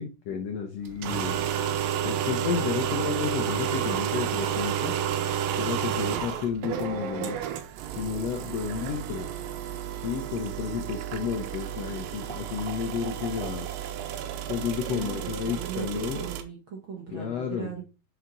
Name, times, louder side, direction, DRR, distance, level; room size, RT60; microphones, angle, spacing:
voice 1, 0.0-1.4 2.0-5.0 5.6-7.4 7.9-9.3 10.0-13.7 14.5-16.2 17.1-17.7, left 7 dB, 75° left, 4 dB, 1.5 m, -31 dB
sound 1, 0.9-16.4, right 9 dB, 85° right, 2.5 m, -31 dB
voice 2, 14.9-17.8, right 6 dB, 50° right, 0 dB, 1.6 m, -39 dB
6.5 x 5.6 x 3.8 m, 0.31 s
omnidirectional pair, 4.0 m